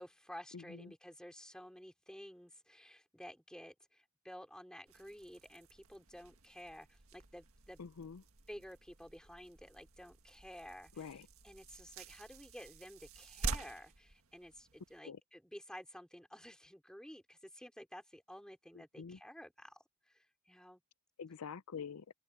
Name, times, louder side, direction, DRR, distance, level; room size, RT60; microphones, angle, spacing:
voice 1, 0.0-7.8 8.5-20.8, equal, 5° left, 4.5 m, -53 dB
voice 2, 0.5-0.9 7.8-8.2 11.0-11.3 15.1-15.2 19.0-19.2 21.2-22.0, left 6 dB, 90° left, 0.5 m, -46 dB
sound 1, 4.9-15.0, right 4 dB, 75° right, 1.7 m, -48 dB
open air
head